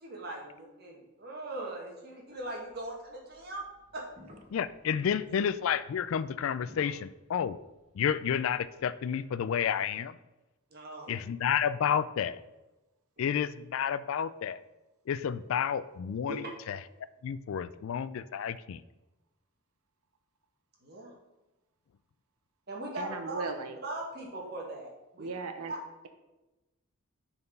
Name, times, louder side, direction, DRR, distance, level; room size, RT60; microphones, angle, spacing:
voice 1, 0.0-3.7 3.9-4.0 10.7-11.2 13.2-13.3 16.3-16.4 20.8-21.2 22.7-23.4 23.8-25.3 25.7-25.8, right 2 dB, 45° right, -1 dB, 1.8 m, -40 dB
sound 1, 2.3-8.9, left 1 dB, 30° right, 1.1 m, -58 dB
voice 2, 4.5-7.6 7.9-10.2 11.1-12.4 13.2-14.6 15.1-18.8, left 8 dB, 65° left, 16 dB, 0.3 m, -31 dB
voice 3, 23.0-23.8 25.2-25.7, right 4 dB, 85° right, 8 dB, 0.7 m, -37 dB
6.8 x 4.4 x 5.3 m, 1.0 s
head